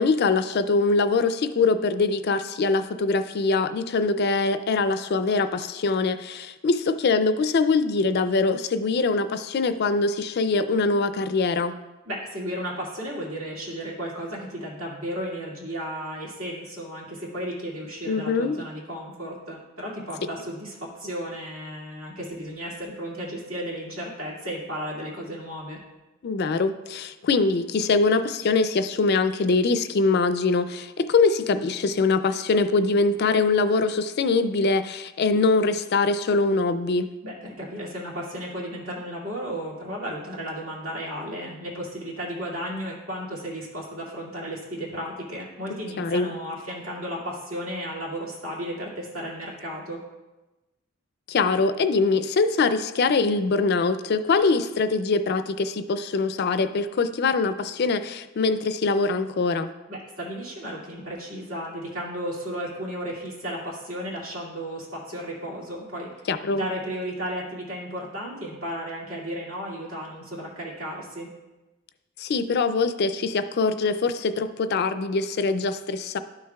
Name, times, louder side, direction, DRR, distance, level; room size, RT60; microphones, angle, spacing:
voice 1, 0.0-11.8 18.1-18.6 26.2-37.1 46.0-46.4 51.3-59.7 66.3-66.7 72.2-76.2, left 4 dB, 50° left, 11 dB, 0.4 m, -23 dB
voice 2, 12.1-25.8 37.2-50.0 59.9-66.1 66.5-71.3, equal, 75° right, -4 dB, 2.3 m, -34 dB
12.5 x 6.4 x 2.3 m, 1.1 s
head